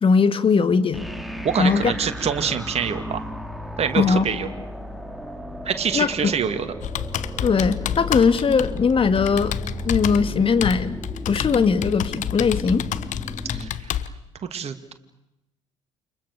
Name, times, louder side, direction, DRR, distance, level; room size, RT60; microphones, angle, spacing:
voice 1, 0.0-1.1 1.6-1.9 3.9-4.3 5.9-6.1 7.4-9.5 9.8-11.0 11.3-12.8, left 5 dB, 35° left, 11 dB, 2.2 m, -20 dB
sound 1, 0.9-13.7, equal, ahead, 3.6 m, -35 dB
voice 2, 1.4-3.3 3.8-4.5 5.6-6.7 13.5-13.9 14.5-14.9, right 7 dB, 40° right, 8 dB, 2.5 m, -26 dB
Computer keyboard, 6.8-14.1, left 11 dB, 50° left, 1.2 m, -30 dB
29.5 x 28.0 x 6.8 m, 0.89 s
figure-of-eight pair, 55°, 16 cm